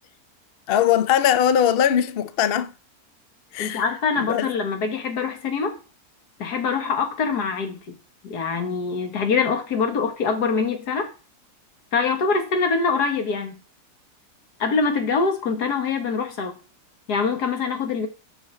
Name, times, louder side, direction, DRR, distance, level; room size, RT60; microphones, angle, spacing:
voice 1, 0.7-2.7 3.5-3.8 4.1-4.5, left 9 dB, 60° left, 0.6 m, -20 dB
voice 2, 3.6-5.8 6.4-7.8 8.2-11.1 11.9-13.6 14.6-16.5 17.1-18.1, left 5 dB, 80° left, 1.9 m, -24 dB
6.6 x 5.8 x 4.3 m
omnidirectional pair, 1.7 m